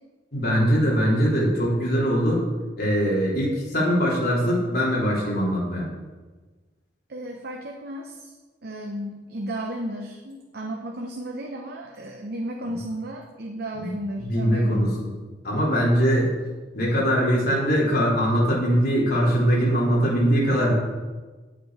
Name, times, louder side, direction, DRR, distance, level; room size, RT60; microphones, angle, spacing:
voice 1, 0.3-2.4 2.8-5.9 12.7-12.8 13.8-13.9 14.2-15.1 15.4-16.3 16.7-20.7, equal, 55° left, -5 dB, 3.2 m, -22 dB
voice 2, 7.1-8.3 8.6-15.0, right 1 dB, 55° right, 2 dB, 0.8 m, -34 dB
9.2 x 8.1 x 4.9 m, 1.3 s
head